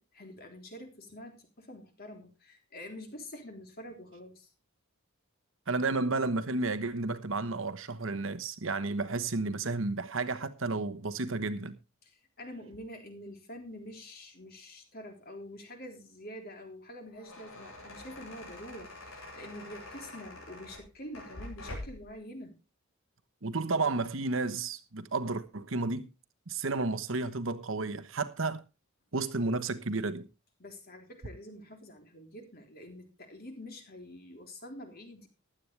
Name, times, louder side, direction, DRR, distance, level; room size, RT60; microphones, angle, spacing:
voice 1, 0.0-4.5 12.0-22.6 30.6-35.3, left 1 dB, 45° left, 3.6 m, -46 dB
voice 2, 5.7-11.8 23.4-26.1 26.5-28.6 29.1-30.3, right 3 dB, 70° right, 1.2 m, -32 dB
sound 1, 16.9-22.1, left 2 dB, 85° left, 7.7 m, -46 dB
15.5 x 11.5 x 3.4 m
head